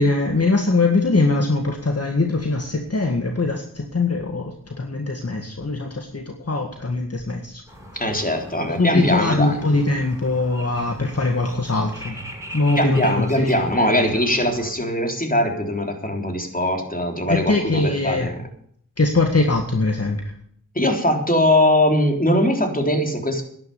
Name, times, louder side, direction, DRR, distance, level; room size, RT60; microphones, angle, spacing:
voice 1, 0.0-7.6 8.7-12.2 12.5-14.0 17.3-18.3 19.0-20.3, left 3 dB, 50° left, 4 dB, 1.9 m, -22 dB
sound 1, 7.7-14.7, equal, 10° right, 6.7 m, -40 dB
voice 2, 7.9-9.6 12.8-18.4 20.8-23.4, left 1 dB, 25° left, 4 dB, 3.7 m, -21 dB
11.0 x 11.0 x 7.0 m, 0.63 s
wide cardioid pair, 45°, 33 cm